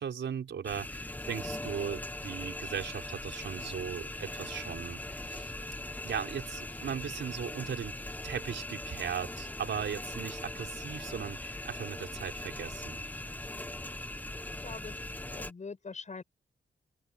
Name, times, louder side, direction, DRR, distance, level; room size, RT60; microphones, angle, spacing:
voice 1, 0.0-5.0 5.3-5.5 6.0-7.9 8.2-13.0, right 7 dB, 85° right, 4.7 m, -38 dB
sound 1, 0.6-15.5, left 1 dB, 10° left, 0.9 m, -40 dB
voice 2, 14.6-16.2, left 4 dB, 40° left, 6.1 m, -44 dB
wide cardioid pair, 115°, 19 cm